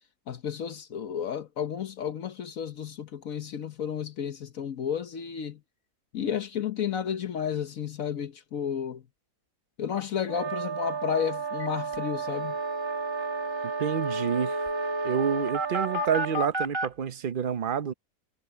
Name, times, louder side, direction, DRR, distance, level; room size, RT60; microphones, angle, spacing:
voice 1, 0.3-5.6 6.1-9.0 9.8-12.5, left 8 dB, 65° left, 1.3 m, -32 dB
sound 1, 10.3-16.5, right 6 dB, 85° right, 3.0 m, -33 dB
sound 2, 11.6-11.7 11.9-12.0 12.3-16.9, equal, 15° right, 2.7 m, -33 dB
voice 2, 13.6-14.6 15.0-17.9, right 7 dB, 45° right, 0.8 m, -29 dB
omnidirectional pair, 1.6 m